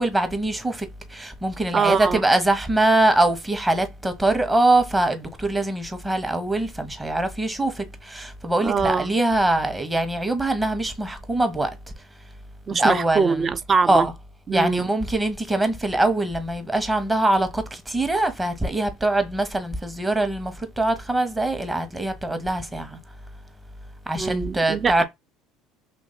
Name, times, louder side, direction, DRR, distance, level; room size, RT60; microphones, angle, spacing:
voice 1, 0.0-11.8 12.7-13.5 13.9-14.1 14.5-23.0 24.1-25.0, right 2 dB, 15° right, 0.9 m, -23 dB
voice 2, 1.7-2.2 8.6-9.2 12.7-14.1 14.5-14.9 24.1-25.0, right 5 dB, 30° right, 0.4 m, -23 dB
3.0 x 2.6 x 4.1 m
hypercardioid pair, 75°, 0 cm